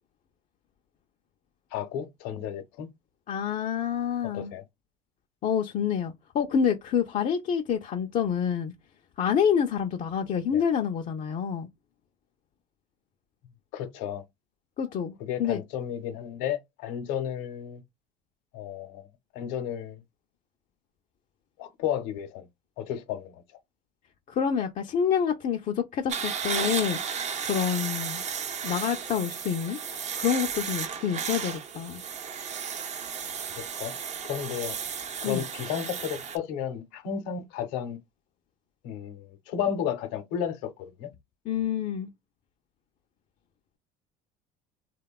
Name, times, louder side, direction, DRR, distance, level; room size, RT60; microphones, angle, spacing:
voice 1, 1.7-2.9 4.3-4.6 10.5-10.6 13.7-14.2 15.2-17.8 18.5-19.1 19.3-20.0 21.6-22.5 22.8-23.4 33.6-33.9 34.2-34.8 35.2-38.0 38.8-41.1, left 9 dB, 80° left, 0.7 m, -33 dB
voice 2, 3.3-4.5 5.4-8.7 9.2-11.7 14.8-15.6 24.3-27.0 27.4-28.2 28.6-32.0 35.2-35.4 41.5-42.1, left 8 dB, 40° left, 0.4 m, -27 dB
sound 1, 26.1-36.4, right 7 dB, 35° right, 0.5 m, -34 dB
2.8 x 2.1 x 2.3 m
supercardioid pair, 95°, 20 cm